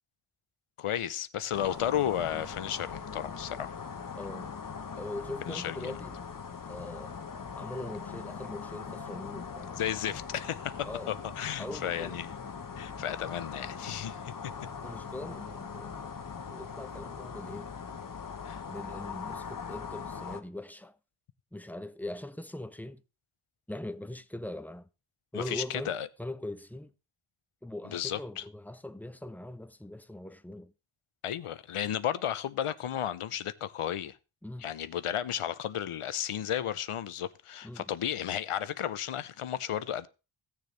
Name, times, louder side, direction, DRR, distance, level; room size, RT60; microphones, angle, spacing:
voice 1, 0.8-3.8 5.5-6.0 9.8-12.3 12.8-14.3 18.4-18.6 25.3-26.1 27.8-28.4 31.2-34.2 34.6-40.1, left 10 dB, 85° left, 0.7 m, -33 dB
sound 1, 1.5-20.4, left 6 dB, 40° left, 0.9 m, -41 dB
voice 2, 4.2-4.5 4.9-6.2 6.7-7.2 7.6-9.8 10.8-11.2 11.6-12.2 14.8-16.2 16.5-17.7 18.7-21.0 21.5-23.0 23.7-24.9 25.3-25.9 26.2-26.9 27.6-30.7 34.4-34.7 37.6-37.9, left 1 dB, 5° left, 0.4 m, -41 dB
16.5 x 6.7 x 3.2 m
wide cardioid pair, 95°, 50 cm